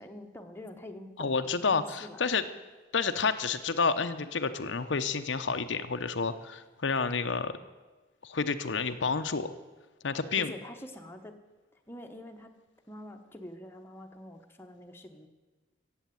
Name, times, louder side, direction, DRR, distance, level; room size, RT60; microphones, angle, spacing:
voice 1, 0.0-1.4 1.7-2.2 10.4-11.4 11.9-12.5 12.9-15.3, left 1 dB, 10° left, 4 dB, 1.0 m, -45 dB
voice 2, 1.2-2.4 2.9-7.6 8.2-9.5 10.0-10.5, left 5 dB, 75° left, 8 dB, 0.8 m, -29 dB
15.5 x 7.9 x 9.3 m, 1.3 s
head